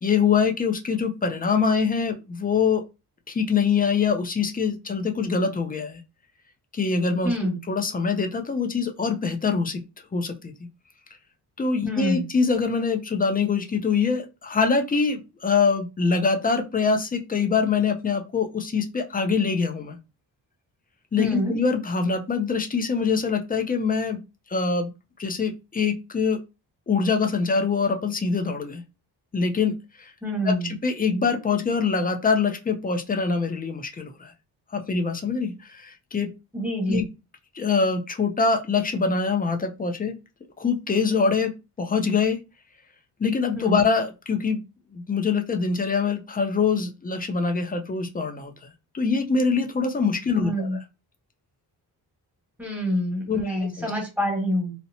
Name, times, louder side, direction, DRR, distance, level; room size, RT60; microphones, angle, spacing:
voice 1, 0.0-2.8 3.3-6.0 6.7-7.3 7.7-9.8 10.1-10.4 11.6-20.0 21.1-24.2 24.5-24.9 25.2-26.4 26.9-28.8 29.3-29.7 30.0-30.1 30.4-34.3 34.7-36.3 36.9-37.0 37.5-40.2 40.6-41.5 41.8-42.4 43.2-44.6 44.9-48.5 48.9-50.8 53.3-53.9, left 5 dB, 25° left, 5 dB, 0.4 m, -24 dB
voice 2, 7.2-7.6 11.8-12.2 21.2-21.5 30.2-30.7 36.5-37.0 43.5-43.8 50.3-50.8 52.6-54.7, equal, 5° right, -2 dB, 1.4 m, -26 dB
2.7 x 2.0 x 2.7 m, 0.27 s
cardioid pair, 85°, 39 cm